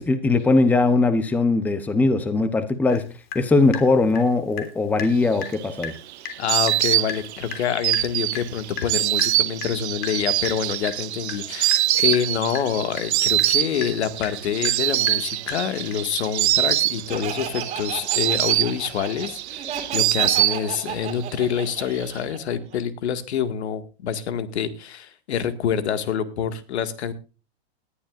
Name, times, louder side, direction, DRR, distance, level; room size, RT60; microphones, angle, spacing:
voice 1, 0.0-3.0 3.3-5.9, left 3 dB, 5° left, 11 dB, 0.8 m, -20 dB
Water tap faucet / Drip, 2.9-3.0 3.3-4.7 5.0-5.1 5.4-5.6 5.8-6.0 6.2-6.4 6.7-16.1, left 8 dB, 65° left, 3.3 m, -36 dB
Insect, 5.3-21.0 21.3-22.1, right 15 dB, 85° right, 0.6 m, -24 dB
voice 2, 6.4-27.1, left 8 dB, 80° left, 10 dB, 2.0 m, -27 dB
Laughter, 17.1-22.8, right 8 dB, 20° right, 2.5 m, -33 dB
19.5 x 11.5 x 2.5 m, 0.33 s
supercardioid pair, 165°, 33 cm